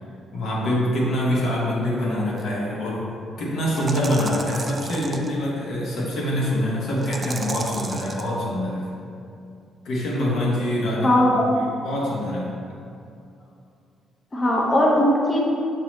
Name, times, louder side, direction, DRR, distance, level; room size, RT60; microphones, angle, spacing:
voice 1, 0.3-3.1 3.4-8.9 9.8-12.8, left 1 dB, 75° left, -5 dB, 1.1 m, -25 dB
sound 1, 2.4-2.5 3.7-5.3 7.0-8.3, right 3 dB, 35° right, 0.3 m, -33 dB
voice 2, 11.0-11.6 14.3-15.4, left 1 dB, 25° left, -2 dB, 0.5 m, -19 dB
5.9 x 2.9 x 3.1 m, 2.6 s
cardioid pair, 90°, 0 cm